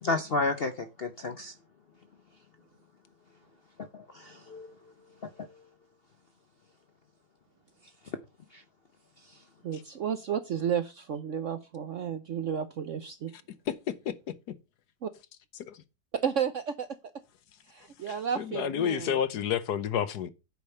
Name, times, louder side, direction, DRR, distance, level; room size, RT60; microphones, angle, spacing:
voice 1, 0.0-1.5 3.8-4.7 8.5-8.6, left 3 dB, 50° left, 0.7 m, -32 dB
voice 2, 9.6-13.3 15.0-15.1 16.1-17.0 17.7-19.2, right 8 dB, 60° right, 0.8 m, -32 dB
voice 3, 13.7-14.1 15.7-15.8 18.1-20.3, left 9 dB, 65° left, 1.3 m, -30 dB
9.2 x 5.1 x 6.6 m
omnidirectional pair, 1.9 m